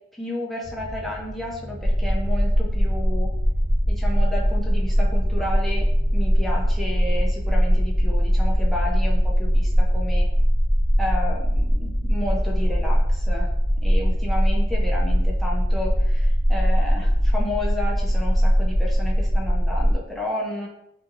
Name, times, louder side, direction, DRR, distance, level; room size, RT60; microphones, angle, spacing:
voice 1, 0.1-3.3 3.9-5.9 6.1-10.3 11.0-13.5 13.8-20.7, left 1 dB, ahead, -3 dB, 0.4 m, -32 dB
sound 1, 0.6-16.6 16.9-17.0 17.3-17.4 17.6-17.9 18.1-18.4 18.8-18.9, equal, 65° right, 1.0 m, -41 dB
sound 2, 1.8-20.0, equal, 50° left, 0.6 m, -21 dB
2.7 x 2.6 x 2.5 m, 0.82 s
head